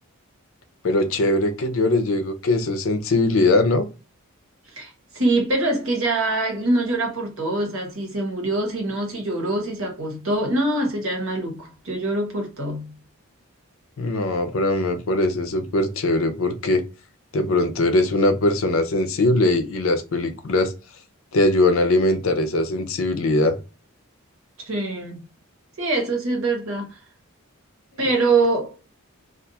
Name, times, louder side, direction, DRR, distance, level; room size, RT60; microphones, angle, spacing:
voice 1, 0.8-3.9 14.0-16.8 17.3-20.7 21.3-23.6, left 2 dB, 65° left, 0.5 m, -21 dB
voice 2, 4.7-13.0 24.6-25.2 25.8-27.0 28.0-28.8, right 2 dB, 65° right, 1.0 m, -24 dB
2.4 x 2.3 x 2.7 m
head